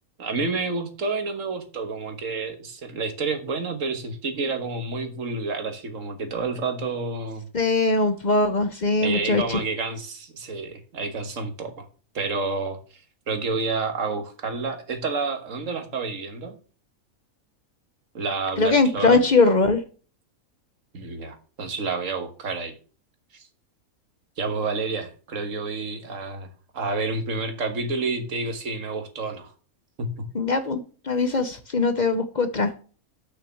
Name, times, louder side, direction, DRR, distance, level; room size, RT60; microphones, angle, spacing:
voice 1, 0.2-7.5 9.0-11.8 12.1-12.8 13.3-16.5 18.1-19.2 20.9-22.7 23.3-23.5 24.4-29.5 30.0-30.3, right 3 dB, 60° right, 7 dB, 1.8 m, -29 dB
voice 2, 7.5-9.6 18.6-19.8 30.3-32.7, left 3 dB, 40° left, 9 dB, 0.7 m, -21 dB
6.3 x 6.2 x 7.1 m, 0.39 s
omnidirectional pair, 1.5 m